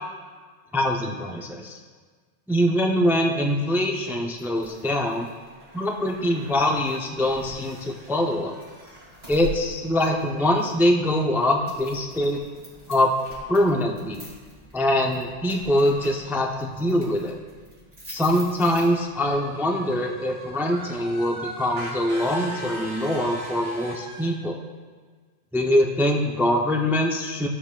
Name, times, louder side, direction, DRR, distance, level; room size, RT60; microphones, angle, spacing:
voice 1, 0.7-1.8 2.5-5.3 5.7-8.5 9.3-12.4 12.9-13.1 13.5-14.3 14.7-17.3 18.1-24.6 25.5-27.5, left 1 dB, 5° right, 1 dB, 0.4 m, -23 dB
sound 1, 4.4-19.3, right 2 dB, 35° right, 2.5 m, -45 dB
sound 2, 19.2-24.3, equal, 65° right, 1.5 m, -38 dB
13.5 x 7.2 x 2.3 m, 1.5 s
omnidirectional pair, 1.2 m